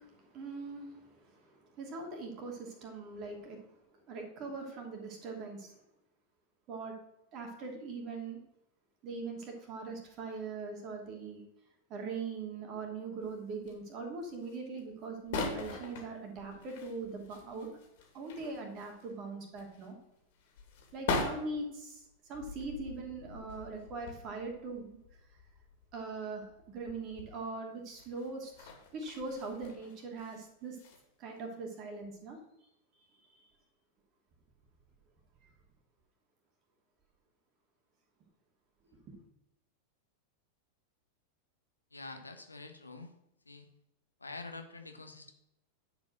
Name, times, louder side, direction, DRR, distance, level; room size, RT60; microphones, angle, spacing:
voice 1, 0.0-3.8 4.1-5.8 6.7-6.9 7.3-8.4 9.0-11.4 11.9-17.7 18.1-20.0 20.9-25.0 25.3-25.4 25.9-30.8 31.2-32.4 33.2-33.5 38.9-39.1, right 3 dB, 35° right, 2 dB, 2.7 m, -41 dB
sound 1, 13.2-13.9 14.2-14.8 15.0-19.1 19.4-27.4 27.9-30.4 30.7-31.0 31.4-31.5, left 4 dB, 55° left, 2.5 m, -42 dB
voice 2, 41.9-43.1 43.4-43.7 44.2-45.3, left 3 dB, 80° left, 6 dB, 1.2 m, -46 dB
10.0 x 5.3 x 6.5 m, 0.83 s
figure-of-eight pair, 90°, 0 cm